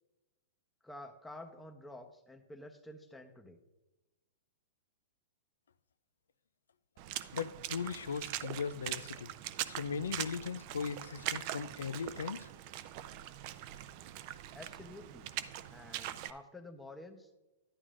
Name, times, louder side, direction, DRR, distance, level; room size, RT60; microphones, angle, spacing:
voice 1, 0.8-3.6 14.5-15.3 15.7-17.3, left 1 dB, 5° left, 0.8 m, -50 dB
Water / Splash splatter, 7.0-16.3, right 13 dB, 45° right, 0.5 m, -42 dB
voice 2, 7.3-9.3 9.7-12.5, left 6 dB, 85° left, 0.4 m, -38 dB
11.0 x 9.8 x 2.5 m
hypercardioid pair, 130°, 0 cm